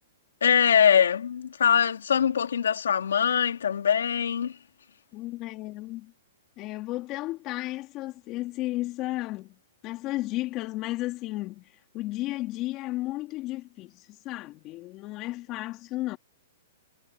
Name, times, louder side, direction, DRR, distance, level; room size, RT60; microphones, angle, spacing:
voice 1, 0.4-4.6, left 8 dB, 85° left, 3.2 m, -22 dB
voice 2, 5.1-6.1 6.6-9.6 9.8-16.2, left 18 dB, 30° left, 3.1 m, -33 dB
hypercardioid pair, 150°, 0 cm